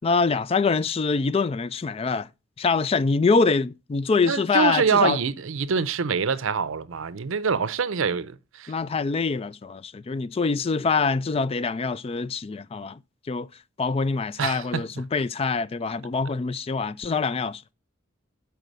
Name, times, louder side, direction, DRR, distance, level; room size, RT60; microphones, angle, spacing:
voice 1, 0.0-2.3 2.6-5.2 8.7-13.0 13.3-13.5 13.8-17.6, left 4 dB, 30° left, 0.3 m, -24 dB
voice 2, 4.2-8.7 14.4-14.8, right 5 dB, 75° right, 0.6 m, -25 dB
6.6 x 4.7 x 6.1 m
head